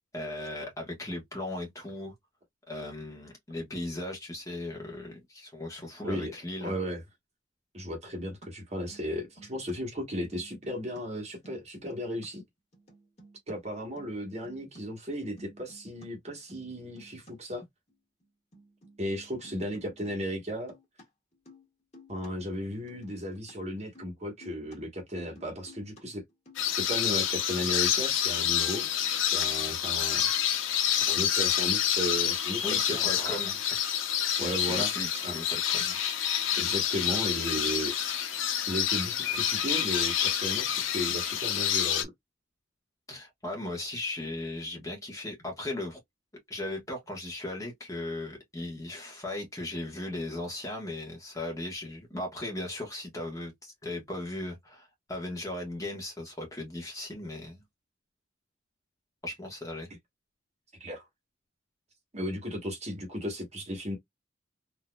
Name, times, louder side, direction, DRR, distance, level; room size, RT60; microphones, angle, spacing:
voice 1, 0.1-2.1 2.7-6.7 32.6-33.8 34.5-36.0 43.1-46.0 46.5-57.6 59.2-59.9, left 1 dB, 15° left, 1.3 m, -37 dB
voice 2, 6.6-7.0 7.7-12.4 13.5-17.6 19.0-20.7 22.1-26.2 26.8-28.9 29.3-30.2 30.9-33.4 34.4-35.4 36.6-37.9 38.7-42.1 60.8-61.0 62.1-64.0, equal, 35° right, 1.3 m, -35 dB
sound 1, 8.4-8.5 8.7-9.7 10.0-11.0 11.3-12.3 12.7-13.5 13.8-14.8 15.1-16.0 16.3-16.7 17.0-17.3 17.9-18.0 18.2-18.3 18.5-21.0 21.3-21.6 21.9-22.3 22.7-23.5 23.8-24.1 24.4-24.8 25.2-26.0 26.3-26.6 26.9-27.3 27.7-27.9, equal, 35° left, 1.8 m, -54 dB
sound 2, 26.6-42.0, left 9 dB, 85° left, 0.7 m, -28 dB
3.8 x 2.8 x 2.3 m
head